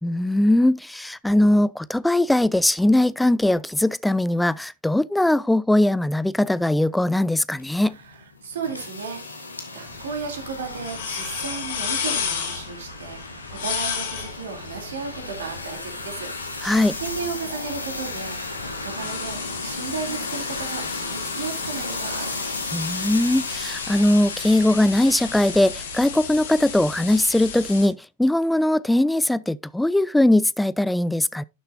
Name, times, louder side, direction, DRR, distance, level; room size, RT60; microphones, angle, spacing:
voice 1, 0.0-7.9 16.6-17.0 22.7-31.4, left 1 dB, 5° left, 0.3 m, -20 dB
sound 1, 7.6-26.2, left 3 dB, 80° left, 1.7 m, -35 dB
voice 2, 7.9-9.3 9.7-22.3, right 5 dB, 60° right, 2.9 m, -34 dB
sound 2, 9.8-27.9, left 6 dB, 60° left, 2.4 m, -34 dB
11.5 x 6.7 x 2.6 m
figure-of-eight pair, 90°, 0 cm